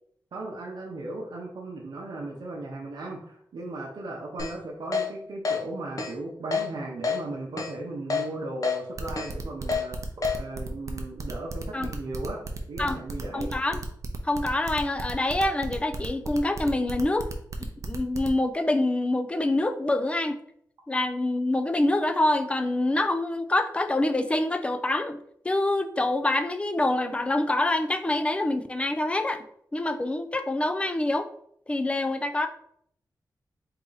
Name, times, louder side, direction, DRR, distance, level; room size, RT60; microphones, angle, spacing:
voice 1, 0.3-9.9 10.4-12.4 12.7-13.5, right 2 dB, 80° right, -3 dB, 0.8 m, -36 dB
Keyboard (musical), 4.4-4.5 4.9-5.1 5.5-5.6 6.0-6.1 6.5-6.7 7.0-7.2 7.6-7.7 8.1-8.2 8.6-8.8 9.2-9.3 9.7-9.8 10.2-10.4, left 5 dB, 50° left, 0.9 m, -26 dB
sound 1, 9.0-18.3, right 4 dB, 45° right, 0.6 m, -36 dB
voice 2, 13.3-13.8 14.2-17.3 17.6-20.4 20.9-25.2 25.4-29.4 29.7-31.3 31.7-32.5, left 2 dB, 15° left, 8 dB, 0.4 m, -26 dB
4.1 x 2.8 x 3.8 m, 0.67 s
wide cardioid pair, 120°, 7 cm